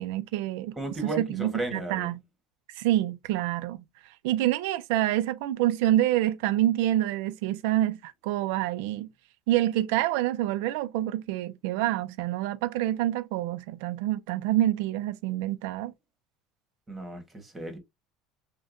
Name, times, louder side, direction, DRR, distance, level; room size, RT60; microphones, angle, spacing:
voice 1, 0.0-0.7 1.0-2.2 2.7-3.8 4.2-9.1 9.5-15.9, right 14 dB, 75° right, 0.4 m, -27 dB
voice 2, 0.8-2.1 16.9-17.8, right 2 dB, 15° right, 1.2 m, -34 dB
6.3 x 2.2 x 2.5 m
cardioid pair, 160°, 0 cm